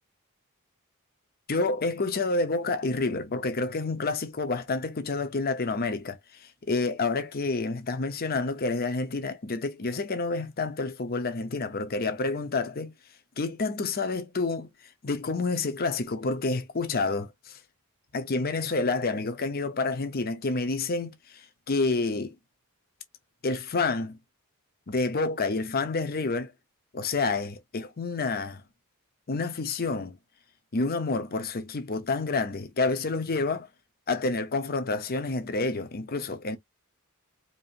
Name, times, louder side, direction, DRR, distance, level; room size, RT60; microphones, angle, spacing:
voice 1, 1.5-12.9 13.4-14.7 15.0-17.6 18.1-22.3 23.4-24.2 24.9-26.5 26.9-28.6 29.3-30.2 30.7-33.7 34.1-36.6, left 3 dB, 45° left, 0.8 m, -29 dB
4.7 x 2.7 x 2.5 m
head